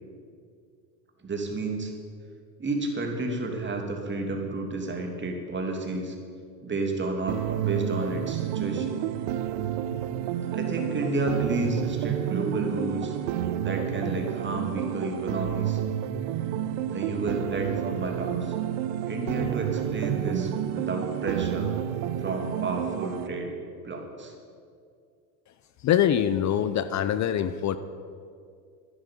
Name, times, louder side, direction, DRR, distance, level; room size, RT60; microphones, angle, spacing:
voice 1, 1.2-1.9 2.6-6.2 6.6-9.0 10.5-13.2 13.6-15.8 16.9-18.5 19.0-21.7 22.2-23.5 23.8-24.3, right 2 dB, 20° right, 2 dB, 2.9 m, -31 dB
sound 1, 7.3-23.3, right 11 dB, 65° right, 1.0 m, -30 dB
voice 2, 25.8-27.8, left 10 dB, 35° left, 13 dB, 0.7 m, -24 dB
11.5 x 10.0 x 8.6 m, 2.3 s
hypercardioid pair, 85°, 49 cm